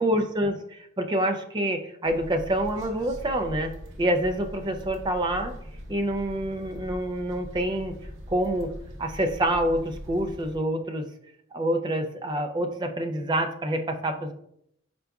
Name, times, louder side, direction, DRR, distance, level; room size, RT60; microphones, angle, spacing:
voice 1, 0.0-3.7 4.0-5.5 5.9-7.9 8.3-8.7 9.0-11.1 11.5-14.3, right 1 dB, 20° right, 5 dB, 0.3 m, -27 dB
sound 1, 2.0-10.6, equal, 65° right, 0.8 m, -41 dB
4.5 x 3.8 x 2.3 m, 0.73 s
head